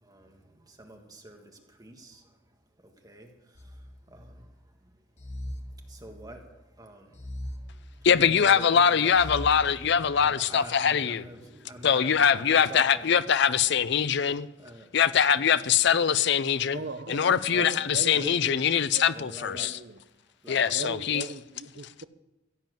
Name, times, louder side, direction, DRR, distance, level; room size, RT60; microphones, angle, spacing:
voice 1, 0.0-2.4 2.8-5.0 5.4-9.2 9.7-13.3 14.6-15.4 16.7-16.9 17.5-17.6 18.1-18.3 19.1-19.7 20.4-21.0, right 1 dB, 20° right, 1.6 m, -47 dB
sound 1, 3.6-4.5 5.2-6.5 7.1-8.4 9.1-10.3, left 1 dB, 35° left, 1.2 m, -40 dB
voice 2, 8.0-11.2 11.8-14.5 14.9-16.8 17.1-19.8 20.5-21.2, left 7 dB, 60° left, 0.5 m, -23 dB
voice 3, 16.7-18.6 18.9-19.1 19.5-20.0 20.6-22.0, right 3 dB, 55° right, 0.7 m, -39 dB
16.0 x 7.4 x 7.6 m
head